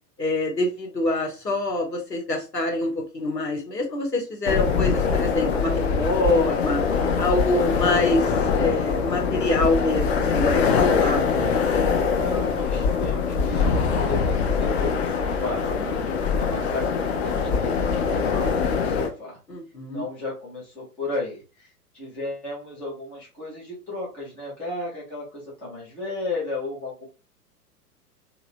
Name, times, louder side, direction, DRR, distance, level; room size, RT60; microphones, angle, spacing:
voice 1, 0.2-6.8 7.2-11.4 15.8-16.5 19.5-20.0, left 2 dB, 85° left, 0 dB, 1.5 m, -25 dB
sound 1, 4.4-19.1, left 5 dB, 40° left, 0.8 m, -23 dB
voice 2, 12.1-15.7 16.3-19.4 19.9-21.7 21.9-27.1, left 2 dB, 5° left, -7 dB, 0.4 m, -34 dB
3.0 x 2.9 x 2.7 m, 0.32 s
figure-of-eight pair, 105°, 48 cm